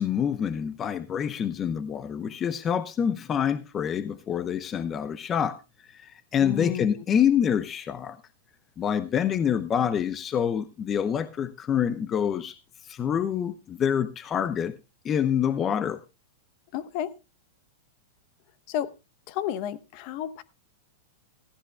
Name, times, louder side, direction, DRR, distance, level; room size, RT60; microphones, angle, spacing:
voice 1, 0.0-5.6 5.9-8.2 8.8-12.6 12.8-14.7 15.0-16.0, left 8 dB, 25° left, 0.7 m, -26 dB
voice 2, 6.4-7.0 15.9-16.0 16.7-17.2 18.7-18.9 19.3-20.4, left 11 dB, 45° left, 1.0 m, -32 dB
16.0 x 14.5 x 2.2 m
hypercardioid pair, 135°, 0 cm